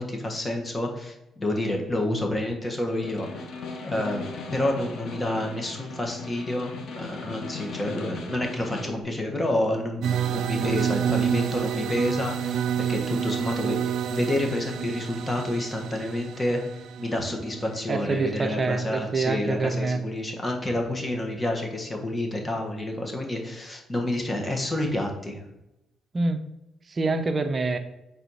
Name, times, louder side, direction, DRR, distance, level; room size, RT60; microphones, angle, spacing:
voice 1, 0.0-3.5 3.8-4.2 4.5-16.6 17.0-25.4, left 1 dB, 20° left, 2 dB, 1.3 m, -29 dB
Snare drum, 2.9-9.0, left 4 dB, 70° left, 0.9 m, -38 dB
sound 1, 10.0-18.8, right 9 dB, 75° right, 0.4 m, -29 dB
voice 2, 17.9-20.0 26.1-26.4 26.9-27.8, right 3 dB, 35° right, 7 dB, 0.7 m, -26 dB
4.6 x 4.1 x 5.5 m, 0.90 s
cardioid pair, 90°, 0 cm